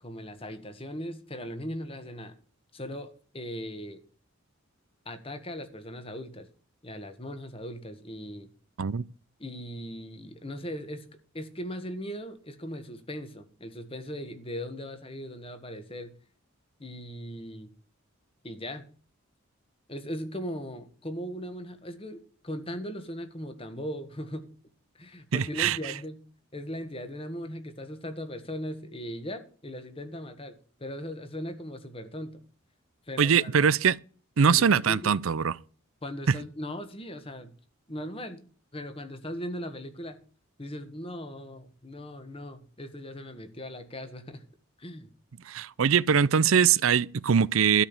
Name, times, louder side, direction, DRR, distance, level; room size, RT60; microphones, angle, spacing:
voice 1, 0.0-2.3 2.7-4.0 5.1-6.5 6.8-8.5 9.4-11.1 11.3-16.1 16.8-17.7 18.4-18.9 19.9-24.5 25.0-26.2 26.5-32.4 33.1-33.7 34.5-35.1 36.0-37.5 37.9-38.4 38.7-40.2 40.6-44.4 44.8-45.1, equal, 25° left, 1.6 m, -38 dB
voice 2, 25.3-25.8 33.2-34.0 34.4-35.5 36.3-36.4 45.5-47.8, right 7 dB, 80° right, 0.5 m, -22 dB
13.0 x 5.1 x 8.8 m
head